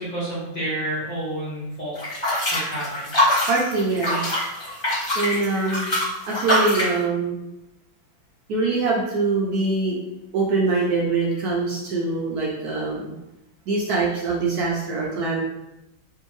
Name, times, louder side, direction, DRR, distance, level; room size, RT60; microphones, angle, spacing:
voice 1, 0.0-2.0 2.5-3.2, right 1 dB, 80° left, -9 dB, 0.4 m, -29 dB
sound 1, 1.9-7.0, left 1 dB, 30° left, 1.6 m, -23 dB
voice 2, 3.5-4.2 5.1-5.9 6.3-7.4 8.5-10.0 10.3-13.1 13.7-15.4, right 3 dB, 70° right, -4 dB, 0.9 m, -23 dB
3.4 x 2.7 x 3.0 m, 0.92 s
omnidirectional pair, 2.2 m